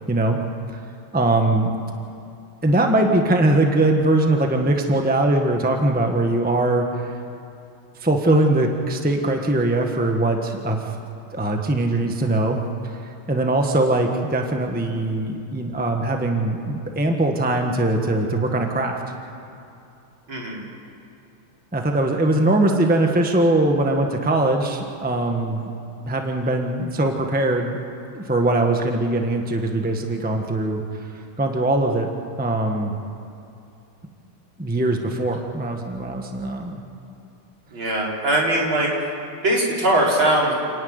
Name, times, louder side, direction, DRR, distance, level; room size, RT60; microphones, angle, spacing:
voice 1, 0.1-0.4 1.1-1.7 2.6-7.1 8.0-10.8 11.3-12.6 13.3-19.0 21.7-25.6 26.0-27.8 28.1-30.8 31.4-32.1 32.4-32.9 34.6-36.8, right 2 dB, 5° right, 3 dB, 1.3 m, -21 dB
voice 2, 20.3-20.6 37.7-38.9 39.4-40.5, right 1 dB, 65° right, -4 dB, 5.1 m, -20 dB
29.0 x 10.5 x 9.7 m, 2.7 s
omnidirectional pair, 2.3 m